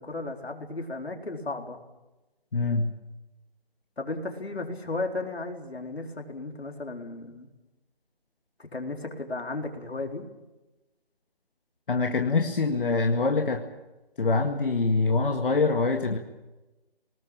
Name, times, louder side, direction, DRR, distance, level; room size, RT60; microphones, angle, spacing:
voice 1, 0.0-1.8 4.0-7.5 8.7-10.3, left 2 dB, 90° left, 3 dB, 4.2 m, -34 dB
voice 2, 2.5-2.9 11.9-13.6 14.2-16.2, left 3 dB, 60° left, 3 dB, 2.0 m, -24 dB
20.5 x 19.5 x 8.9 m, 1.1 s
figure-of-eight pair, 165°, 31 cm